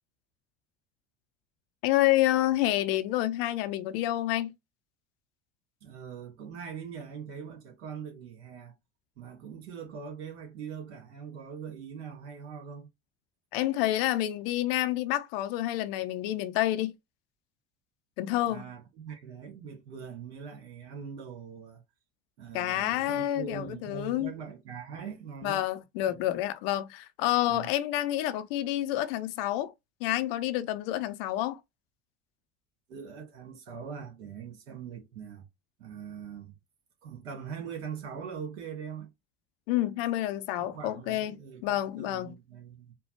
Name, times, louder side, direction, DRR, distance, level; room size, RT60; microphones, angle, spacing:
voice 1, 1.8-4.5 13.5-16.9 18.2-18.6 22.5-24.3 25.4-29.7 30.0-31.6 39.7-41.3 41.6-42.3, left 14 dB, 55° left, 0.6 m, -28 dB
voice 2, 5.8-8.8 9.2-12.9 18.4-21.8 22.4-25.6 26.1-26.2 27.5-27.7 32.9-35.4 35.8-36.6 37.0-39.1 40.6-42.9, right 7 dB, 65° right, 1.9 m, -42 dB
4.4 x 2.2 x 4.4 m
figure-of-eight pair, 65°, 34 cm